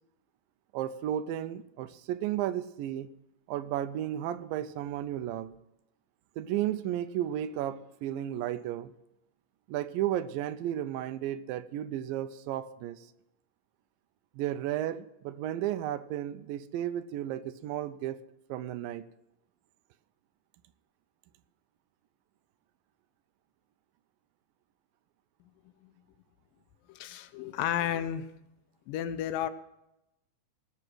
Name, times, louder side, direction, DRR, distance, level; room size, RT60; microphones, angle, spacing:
voice 1, 0.7-3.1 3.5-5.6 6.4-8.9 9.7-13.1 14.4-18.2 18.5-19.1, right 12 dB, 85° right, 2.4 m, -33 dB
voice 2, 26.9-28.3 28.9-29.5, left 10 dB, 80° left, 2.4 m, -32 dB
18.5 x 6.7 x 6.1 m
omnidirectional pair, 4.0 m